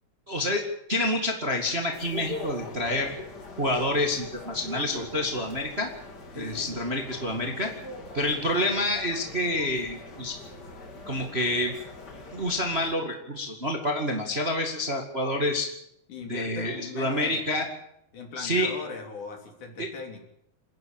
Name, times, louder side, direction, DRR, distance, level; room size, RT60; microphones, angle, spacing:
voice 1, 0.3-3.1 3.6-5.9 6.3-7.7 8.1-10.4 11.1-11.7 12.3-15.7 16.2-17.7 18.4-18.7 19.8-19.9, left 1 dB, 20° right, 2 dB, 1.7 m, -28 dB
sound 1, 1.9-13.0, left 3 dB, 30° left, 2.6 m, -42 dB
voice 2, 6.3-6.8 16.1-17.5 18.1-20.2, left 4 dB, 55° left, 3 dB, 4.5 m, -39 dB
28.5 x 10.5 x 8.9 m, 0.74 s
omnidirectional pair, 4.2 m